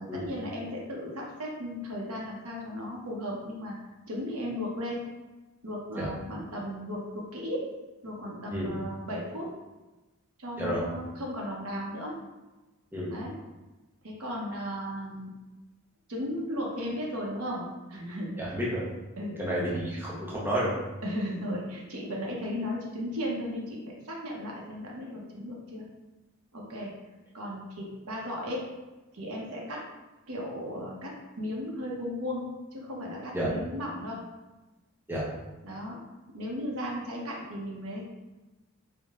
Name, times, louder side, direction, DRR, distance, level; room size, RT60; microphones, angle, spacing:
voice 1, 0.0-3.7 4.1-5.0 5.6-7.7 8.0-9.5 10.4-12.2 13.1-13.4 14.0-15.3 16.1-18.4 19.1-19.8 21.0-25.8 26.5-26.9 27.3-28.7 29.1-29.8 30.3-34.2 35.6-36.0 36.3-38.1, equal, 85° right, -2 dB, 0.9 m, -35 dB
voice 2, 18.4-18.8 19.4-20.7 33.3-33.5 35.1-35.2, equal, 10° right, -6 dB, 0.6 m, -30 dB
3.6 x 2.1 x 3.6 m, 1.1 s
head